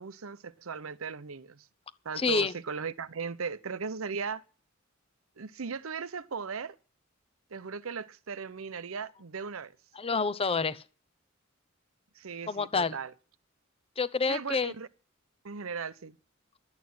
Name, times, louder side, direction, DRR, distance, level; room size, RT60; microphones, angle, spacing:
voice 1, 0.0-1.7 2.0-4.4 5.4-6.8 7.5-9.7 12.2-13.1 14.3-14.9 15.4-16.2, right 5 dB, 90° right, 0.8 m, -37 dB
voice 2, 2.2-2.5 10.0-10.8 12.5-13.0 14.0-14.7, left 4 dB, 30° left, 0.7 m, -28 dB
11.5 x 8.4 x 9.5 m
head